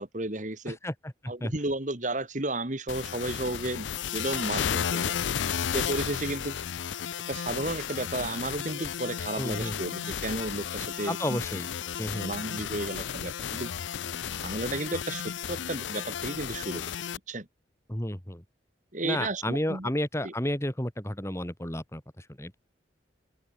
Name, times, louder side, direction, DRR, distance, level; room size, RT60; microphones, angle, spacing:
voice 1, 0.0-0.8 1.3-3.9 4.1-5.2 5.7-6.6 7.3-11.4 12.1-13.7 14.4-16.8 17.3-17.5 18.9-19.9 20.2-20.3, right 2 dB, 40° right, 2.2 m, -33 dB
voice 2, 0.7-1.5 9.4-9.8 11.1-11.7 12.0-12.3 17.9-18.4 19.0-22.5, left 1 dB, 15° left, 2.3 m, -32 dB
sound 1, 2.9-17.2, left 8 dB, 75° left, 0.5 m, -33 dB
open air
head